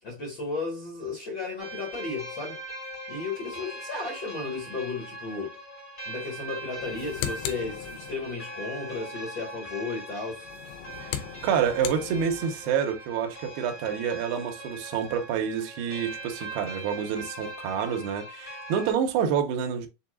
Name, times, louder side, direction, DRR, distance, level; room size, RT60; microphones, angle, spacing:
voice 1, 0.0-2.6 3.1-5.5 6.0-10.5, left 3 dB, 70° left, 1.1 m, -34 dB
sound 1, 1.6-18.9, right 1 dB, 50° left, 0.5 m, -41 dB
sound 2, 6.8-8.4 10.4-12.7, left 10 dB, 85° left, 2.9 m, -37 dB
voice 2, 11.0-19.9, right 7 dB, 75° right, 2.5 m, -28 dB
6.9 x 2.5 x 2.5 m
omnidirectional pair, 5.0 m